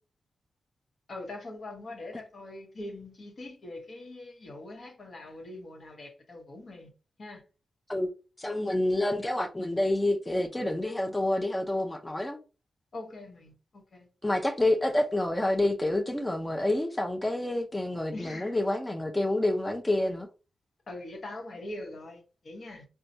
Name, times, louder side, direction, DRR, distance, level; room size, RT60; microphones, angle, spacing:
voice 1, 1.1-6.9 7.2-7.4 12.9-14.1 18.1-18.6 20.9-22.8, left 2 dB, 60° left, 1.1 m, -42 dB
voice 2, 8.4-12.4 14.2-20.3, left 1 dB, 20° left, 0.6 m, -28 dB
4.1 x 2.3 x 2.6 m
supercardioid pair, 45°, 0 cm